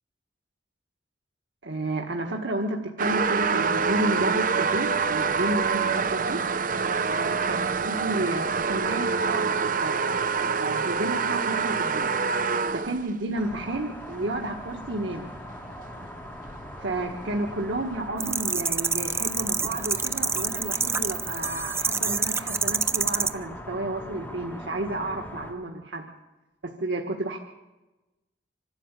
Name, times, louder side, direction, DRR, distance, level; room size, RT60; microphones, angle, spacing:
voice 1, 1.6-6.4 7.1-10.0 10.6-12.1 12.7-15.3 16.8-26.1 26.6-27.4, right 2 dB, 90° right, 1 dB, 1.8 m, -31 dB
sound 1, 3.0-13.1 13.8-13.9 15.5-15.6 16.0-16.1 16.5-16.6 17.1-17.2, right 5 dB, 50° right, 0.8 m, -26 dB
sound 2, 13.3-25.5, equal, 10° left, 2.7 m, -41 dB
sound 3, 18.2-23.3, right 5 dB, 15° right, 0.7 m, -26 dB
26.0 x 12.5 x 8.4 m, 1.1 s
head